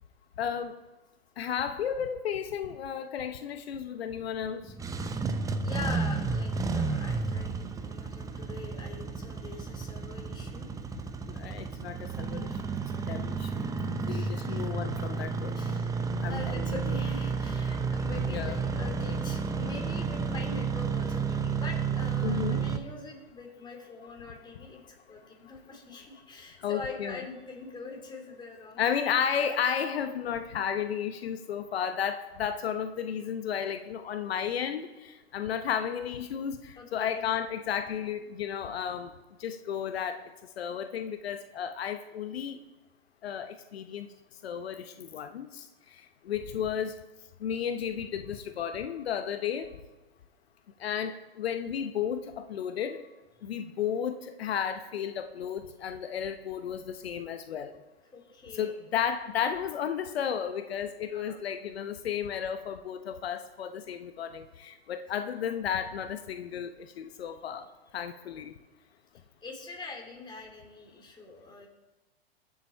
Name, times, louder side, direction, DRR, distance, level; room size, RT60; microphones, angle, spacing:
voice 1, 0.4-0.8 1.4-4.7 11.3-12.5 12.9-13.5 14.1-15.8 16.2-17.0 18.3-18.6 22.2-22.7 26.6-27.2 28.8-39.1 39.4-40.3 40.6-42.6 43.2-44.1 44.4-45.7 46.2-46.9 47.4-49.7 50.8-53.0 53.4-57.7 58.5-67.7 67.9-68.5, left 8 dB, 80° left, 9 dB, 0.9 m, -33 dB
Engine starting, 4.6-22.8, right 5 dB, 10° right, 0.7 m, -32 dB
voice 2, 5.6-10.7 14.1-14.6 15.5-15.9 16.3-28.8 36.7-37.3 46.3-46.4 58.1-58.7 61.1-61.4 69.4-71.7, left 3 dB, 15° left, 0 dB, 3.1 m, -43 dB
21.5 x 7.5 x 4.4 m, 1.1 s
hypercardioid pair, 115°, 31 cm